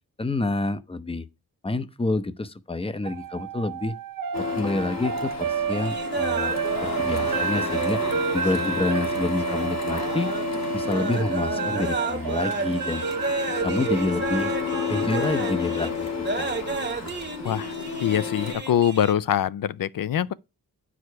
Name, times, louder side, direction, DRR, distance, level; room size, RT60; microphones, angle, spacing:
voice 1, 0.2-1.2 1.6-3.9 4.4-6.5 6.8-8.0 8.3-10.3 10.7-13.0 13.6-14.5 14.9-16.1 16.4-16.5, left 2 dB, 15° left, 0.6 m, -28 dB
sound 1, 3.0-17.1, right 7 dB, 70° right, 0.8 m, -31 dB
Printer, 4.3-18.5, left 7 dB, 50° left, 1.2 m, -32 dB
sound 2, 5.7-19.1, right 3 dB, 30° right, 1.1 m, -33 dB
voice 2, 17.4-20.3, left 10 dB, 70° left, 0.5 m, -24 dB
9.5 x 4.9 x 4.5 m
wide cardioid pair, 105°, 35 cm